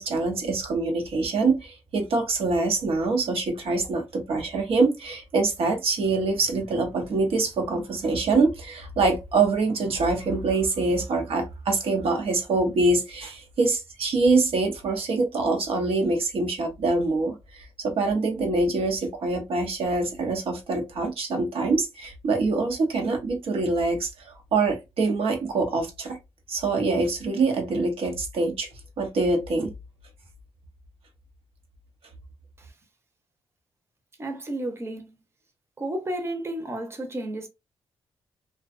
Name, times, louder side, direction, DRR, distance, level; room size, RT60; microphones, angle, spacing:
voice 1, 0.0-26.2 26.5-28.7 29.0-29.7, right 3 dB, 70° right, 0.7 m, -25 dB
voice 2, 34.2-35.2 35.8-37.5, right 1 dB, 25° right, 0.7 m, -32 dB
2.4 x 2.2 x 2.4 m
cardioid pair, 75°, 10 cm